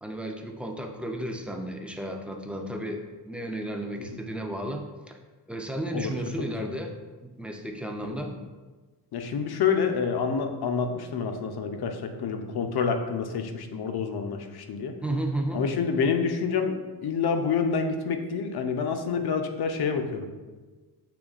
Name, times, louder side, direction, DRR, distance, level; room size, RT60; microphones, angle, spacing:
voice 1, 0.0-5.2 5.5-6.9 7.2-8.3 15.0-15.6, right 1 dB, 5° right, 2 dB, 0.3 m, -33 dB
voice 2, 9.1-15.0 15.5-20.3, left 6 dB, 70° left, 6 dB, 0.6 m, -28 dB
6.8 x 3.0 x 2.4 m, 1.3 s
wide cardioid pair, 115°, 40 cm